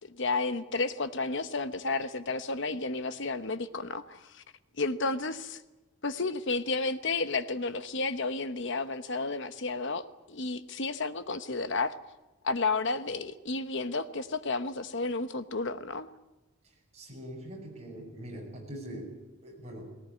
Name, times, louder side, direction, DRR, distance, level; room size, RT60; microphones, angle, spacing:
voice 1, 0.0-4.4 4.8-5.6 6.0-11.9 12.4-16.1, left 3 dB, 55° left, 11 dB, 1.0 m, -32 dB
voice 2, 16.6-20.0, right 1 dB, 30° right, -1 dB, 6.6 m, -43 dB
19.5 x 18.5 x 9.6 m, 1.1 s
head